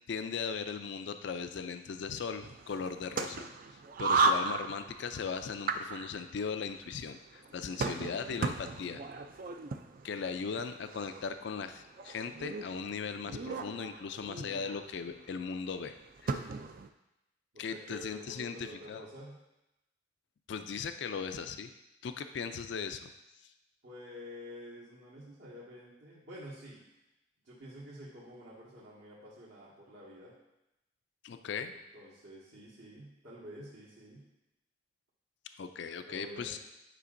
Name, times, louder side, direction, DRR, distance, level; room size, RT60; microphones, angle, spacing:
voice 1, 0.1-3.5 4.0-9.0 10.0-15.9 16.2-16.4 17.6-19.0 20.5-21.7 22.0-23.1 31.2-31.7 35.6-36.6, left 6 dB, 60° left, 9 dB, 0.4 m, -38 dB
sound 1, 2.4-16.9, right 4 dB, 45° right, 0.3 m, -36 dB
voice 2, 7.8-8.5 17.5-19.3 23.8-26.8 27.4-30.3 31.7-34.2 36.0-36.6, equal, 70° right, -10 dB, 1.7 m, -49 dB
9.7 x 5.0 x 2.6 m, 0.92 s
head